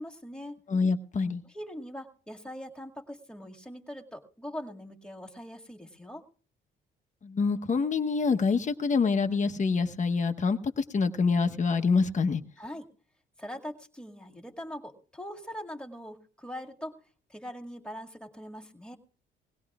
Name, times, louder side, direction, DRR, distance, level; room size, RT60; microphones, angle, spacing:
voice 1, 0.0-0.6 1.4-6.2 12.6-12.9 13.4-17.0 17.3-19.0, equal, 5° left, 2.1 m, -42 dB
voice 2, 0.7-1.4 7.2-12.4, left 4 dB, 40° left, 1.1 m, -26 dB
21.5 x 17.0 x 2.4 m
cardioid pair, 90°, 20 cm